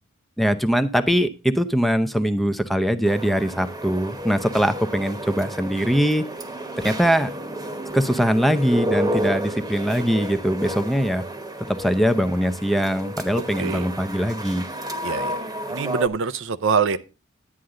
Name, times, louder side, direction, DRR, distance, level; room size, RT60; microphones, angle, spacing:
voice 1, 0.4-6.2 6.8-7.3 7.9-11.2 11.7-14.6, equal, ahead, 0.7 m, -22 dB
sound 1, 3.0-16.1, right 1 dB, 20° right, 1.2 m, -31 dB
voice 2, 13.3-13.9 15.0-15.4 15.7-17.0, right 5 dB, 65° right, 0.6 m, -24 dB
11.5 x 9.2 x 3.8 m
head